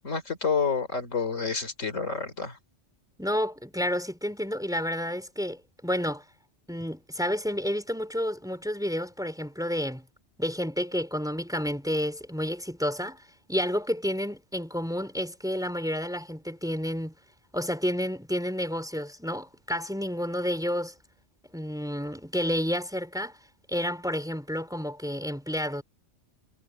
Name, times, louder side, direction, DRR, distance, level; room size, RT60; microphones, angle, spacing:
voice 1, 0.0-2.6, left 5 dB, 85° left, 3.8 m, -29 dB
voice 2, 3.2-6.2 6.7-10.1 10.4-13.2 13.5-17.1 17.5-20.9 21.5-23.4 23.7-25.8, equal, 5° right, 4.4 m, -30 dB
omnidirectional pair, 1.3 m